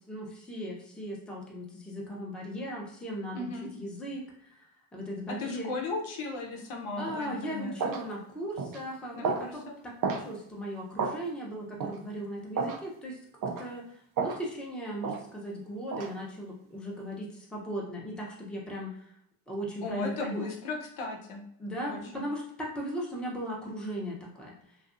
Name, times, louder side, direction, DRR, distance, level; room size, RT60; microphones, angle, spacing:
voice 1, 0.1-4.2 4.9-5.7 7.0-13.1 13.6-13.8 14.2-18.9 19.5-20.5 21.6-24.5, equal, ahead, -3 dB, 0.6 m, -37 dB
voice 2, 3.3-3.7 5.4-7.7 9.1-9.7 19.8-21.4 21.8-22.2, left 3 dB, 75° left, 0 dB, 0.8 m, -36 dB
sound 1, 7.1-7.2 7.8-8.0 8.6-8.8 9.2-9.5 10.0-10.3 11.0-11.2 11.8-12.0 12.6-12.8 13.4-13.6 14.2-14.4 15.0-15.2 15.9-16.1, right 5 dB, 45° right, 0.4 m, -31 dB
2.6 x 2.5 x 2.5 m, 0.72 s
cardioid pair, 85°, 49 cm